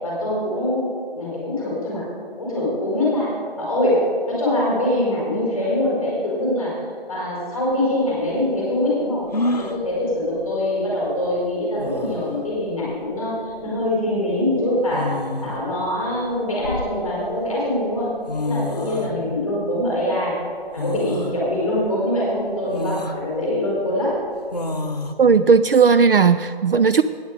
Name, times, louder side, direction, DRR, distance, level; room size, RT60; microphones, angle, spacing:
voice 1, 0.0-2.0 2.4-6.7 7.1-18.2 18.4-20.3 20.7-24.2, left 1 dB, ahead, -7 dB, 3.8 m, -23 dB
sound 1, 7.7-7.8 9.3-9.8 11.3-11.4 11.8-12.3 13.6-13.8 14.9-15.7 16.3-17.3 18.0-18.1 18.3-19.1 20.8-21.4 21.9-22.0 22.7-23.2 24.5-25.1, left 2 dB, 45° left, 0.8 m, -28 dB
voice 2, 25.2-27.0, right 5 dB, 65° right, 12 dB, 0.5 m, -15 dB
14.0 x 9.6 x 5.0 m, 2.3 s
figure-of-eight pair, 175°, 30 cm